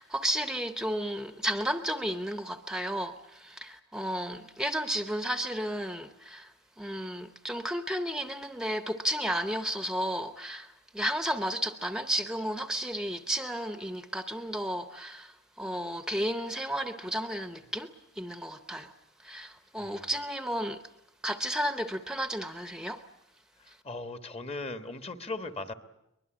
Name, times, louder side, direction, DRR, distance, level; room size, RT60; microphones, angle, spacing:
voice 1, 0.0-18.9 19.2-20.8 21.2-23.0 23.7-23.8, equal, 5° right, 0.8 m, -33 dB
voice 2, 23.8-25.7, left 2 dB, 30° left, 1.3 m, -38 dB
23.5 x 21.0 x 8.8 m
head